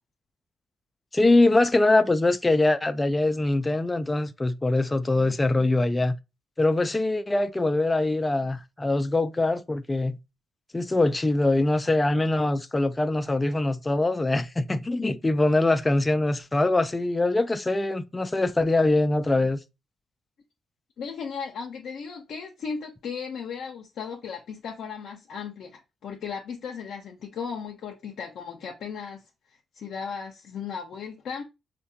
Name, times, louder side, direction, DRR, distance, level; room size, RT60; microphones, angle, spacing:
voice 1, 1.1-6.2 6.6-10.2 10.7-19.6, left 2 dB, 20° left, 0.3 m, -23 dB
voice 2, 21.0-29.2 29.7-31.4, left 6 dB, 75° left, 0.5 m, -36 dB
4.4 x 2.1 x 2.7 m
cardioid pair, 75°, 0 cm